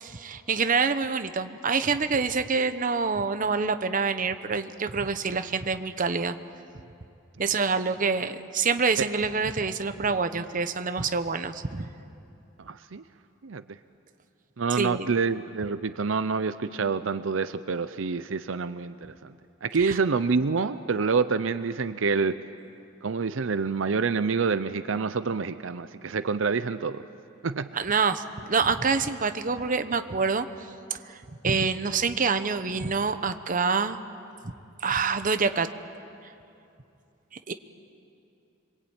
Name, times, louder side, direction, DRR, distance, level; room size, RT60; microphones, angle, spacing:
voice 1, 0.0-6.4 7.4-11.9 14.7-15.1 19.8-20.0 27.7-30.5 30.9-34.0 34.8-35.7 37.5-37.6, right 5 dB, 45° right, 10 dB, 1.0 m, -26 dB
voice 2, 12.6-13.0 13.4-13.6 14.6-19.3 19.6-22.4 23.0-27.0 27.4-27.7, right 5 dB, 80° right, 12 dB, 0.6 m, -27 dB
26.0 x 23.5 x 8.9 m, 2.6 s
head